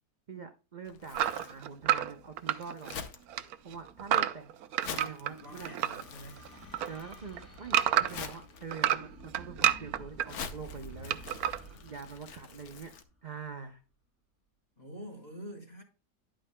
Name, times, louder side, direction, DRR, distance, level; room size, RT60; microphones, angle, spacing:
voice 1, 0.3-2.9 3.6-5.7 6.8-11.2 11.8-12.9 13.2-13.8, right 5 dB, 45° right, 0.6 m, -44 dB
Crumpling crinkling, 0.8-13.0, left 7 dB, 65° left, 1.4 m, -47 dB
sound 1, 1.1-3.0 3.3-6.0 6.4-8.3 8.7-10.3 11.1-11.6, right 11 dB, 70° right, 1.0 m, -29 dB
sound 2, 4.4-13.5, right 1 dB, 45° left, 2.7 m, -52 dB
voice 2, 4.8-6.5 14.8-15.8, equal, 25° left, 2.6 m, -47 dB
11.5 x 8.8 x 2.2 m
omnidirectional pair, 1.8 m